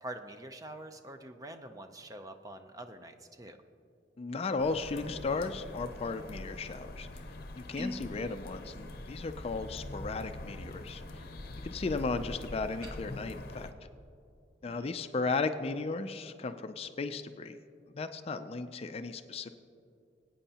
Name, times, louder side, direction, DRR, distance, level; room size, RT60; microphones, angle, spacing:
voice 1, 0.0-3.6 14.7-14.9, right 1 dB, 20° right, 7 dB, 0.5 m, -45 dB
voice 2, 4.2-7.2 7.5-11.2 11.6-13.7 14.6-17.6 18.0-19.5, left 3 dB, 35° left, 9 dB, 0.4 m, -35 dB
sound 1, 4.6-13.7, left 1 dB, 55° left, 0.8 m, -44 dB
sound 2, 7.7-8.1 12.7-13.0, left 1 dB, 50° right, 2.2 m, -40 dB
21.5 x 9.0 x 2.9 m, 2.5 s
head